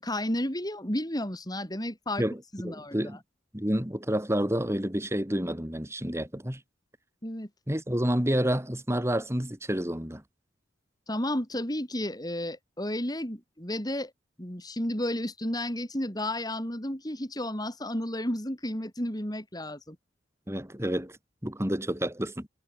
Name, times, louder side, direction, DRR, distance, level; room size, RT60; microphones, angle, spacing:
voice 1, 0.0-2.2 2.5-3.1 7.2-7.5 11.1-14.1 14.4-20.0, left 1 dB, 20° left, 6.8 m, -32 dB
voice 2, 2.6-3.2 3.5-6.6 7.7-10.2 20.5-21.2 21.4-22.5, equal, 15° right, 3.4 m, -29 dB
head